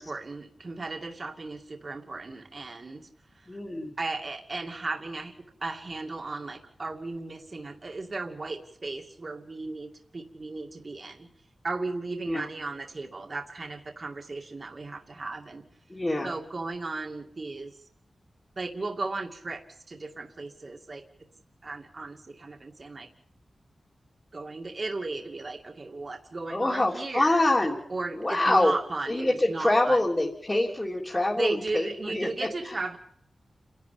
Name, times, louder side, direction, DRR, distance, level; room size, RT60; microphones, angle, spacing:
voice 1, 0.0-3.1 3.3-3.6 4.0-5.3 5.6-11.3 11.6-15.6 16.2-17.8 18.6-21.0 21.6-23.1 24.3-27.5 27.9-30.0 31.4-33.0, right 3 dB, 40° right, 3 dB, 2.4 m, -35 dB
voice 2, 3.5-4.0 12.3-12.5 15.9-16.3 26.5-27.8 28.1-28.7 29.1-32.8, left 1 dB, 20° left, -3 dB, 3.3 m, -25 dB
29.5 x 11.5 x 8.8 m, 0.68 s
wide cardioid pair, 105°, 0 cm